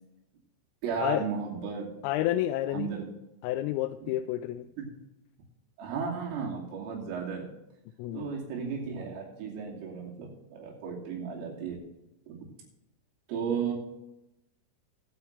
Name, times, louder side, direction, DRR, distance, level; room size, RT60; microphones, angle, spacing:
voice 1, 0.8-1.9 2.7-3.1 4.8-4.9 5.8-7.5 8.1-11.8 12.3-12.4 13.3-13.7, right 6 dB, 80° right, -2 dB, 5.3 m, -34 dB
voice 2, 2.0-2.9 3.4-4.7 8.0-8.4, left 14 dB, 90° left, 6 dB, 3.2 m, -30 dB
17.5 x 9.8 x 3.3 m, 0.90 s
omnidirectional pair, 5.8 m